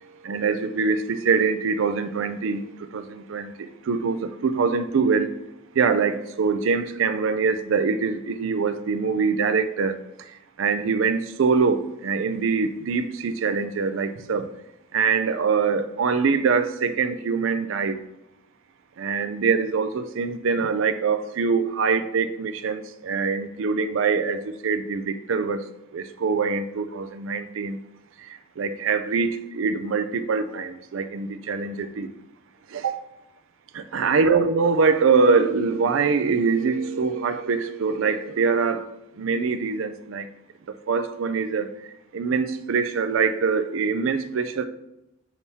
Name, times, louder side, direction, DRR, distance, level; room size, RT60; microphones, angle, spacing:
voice 1, 0.2-2.6 2.9-3.5 3.9-5.3 5.8-10.0 10.6-14.5 14.9-18.0 19.0-25.6 25.9-27.8 28.3-32.1 32.7-33.0 33.7-38.9 39.2-40.3 40.9-41.7 42.1-44.7, right 5 dB, 80° right, 9 dB, 0.4 m, -24 dB
7.1 x 5.9 x 2.7 m, 0.88 s
head